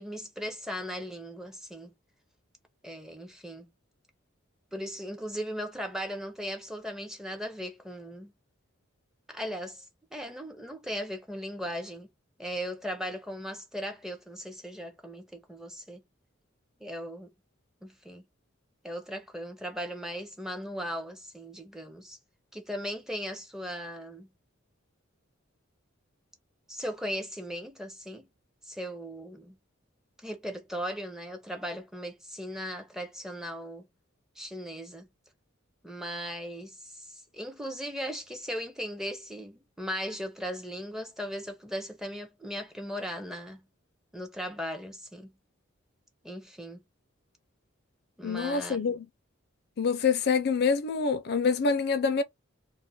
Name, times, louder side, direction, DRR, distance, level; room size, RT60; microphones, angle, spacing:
voice 1, 0.0-1.9 2.8-3.7 4.7-8.3 9.3-9.8 10.1-12.1 12.4-16.0 16.8-17.3 17.8-18.2 18.8-22.2 22.5-24.3 26.7-28.3 28.7-29.6 30.2-33.9 34.4-35.1 35.8-43.6 44.1-45.3 46.2-46.8 48.2-49.0, equal, 5° right, 0.5 m, -38 dB
voice 2, 48.2-49.0 49.8-52.2, left 5 dB, 55° left, 0.4 m, -26 dB
2.3 x 2.0 x 3.7 m
head